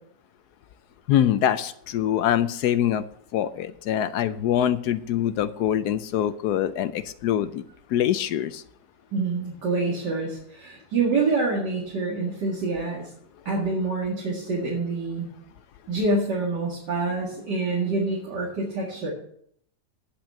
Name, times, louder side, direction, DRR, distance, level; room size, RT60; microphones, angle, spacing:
voice 1, 1.1-3.0 3.3-7.6 7.9-8.6, left 10 dB, 70° left, 13 dB, 1.1 m, -24 dB
voice 2, 9.1-13.1 13.5-15.3 15.9-19.1, right 3 dB, 70° right, -4 dB, 2.6 m, -26 dB
10.0 x 6.0 x 8.5 m, 0.67 s
omnidirectional pair, 1.9 m